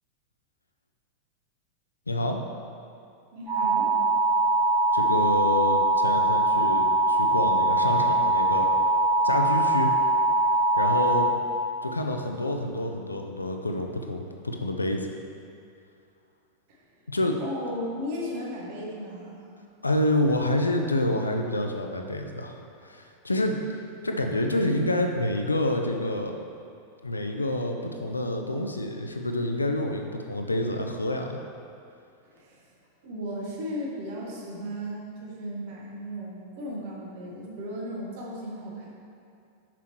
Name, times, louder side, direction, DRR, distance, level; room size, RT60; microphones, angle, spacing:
voice 1, 2.1-2.4 4.9-8.7 9.2-9.9 10.8-11.3 11.8-15.1 17.1-17.4 19.8-23.6 24.0-26.4 27.0-31.4, left 1 dB, 80° left, 4 dB, 0.6 m, -28 dB
voice 2, 3.3-3.9 16.7-16.8 17.4-19.4 32.2-32.6 33.0-38.9, equal, 50° right, -4 dB, 1.5 m, -35 dB
sound 1, 3.5-11.3, right 2 dB, 5° left, 1.6 m, -22 dB
6.0 x 5.8 x 4.6 m, 2.5 s
figure-of-eight pair, 90°, 0 cm